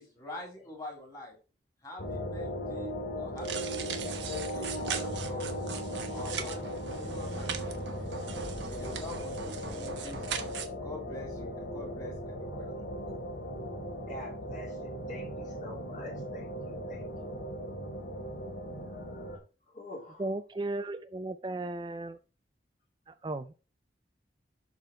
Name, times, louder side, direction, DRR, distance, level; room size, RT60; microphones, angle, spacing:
voice 1, 0.0-1.4 1.8-5.5 6.1-8.1 8.6-10.5 10.7-12.7, left 2 dB, 20° left, -1 dB, 3.2 m, -46 dB
sound 1, 2.0-19.4, equal, 75° left, 2.3 m, -38 dB
sound 2, 3.4-10.7, right 6 dB, 85° right, 1.2 m, -39 dB
voice 2, 14.1-17.4 18.9-20.3, left 2 dB, 45° left, -1 dB, 2.9 m, -47 dB
voice 3, 20.2-22.2 23.1-23.5, right 2 dB, 25° right, 11 dB, 0.4 m, -35 dB
12.0 x 4.0 x 4.3 m, 0.34 s
head